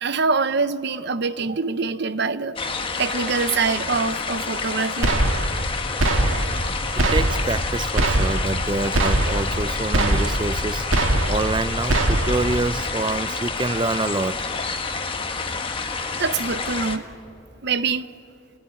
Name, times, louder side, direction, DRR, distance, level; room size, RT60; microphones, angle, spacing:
voice 1, 0.0-5.1 16.2-17.1 17.6-18.1, right 4 dB, 55° right, 0.8 m, -24 dB
sound 1, 2.6-17.0, left 4 dB, 25° left, 1.3 m, -29 dB
sound 2, 5.0-5.7 6.0-6.7 7.0-7.7 8.0-8.7 8.9-9.6 9.9-10.6 10.9-11.6 11.9-12.6, right 1 dB, 80° right, 1.7 m, -22 dB
voice 2, 6.6-14.4, right 2 dB, 25° right, 0.5 m, -27 dB
29.5 x 19.0 x 9.4 m
head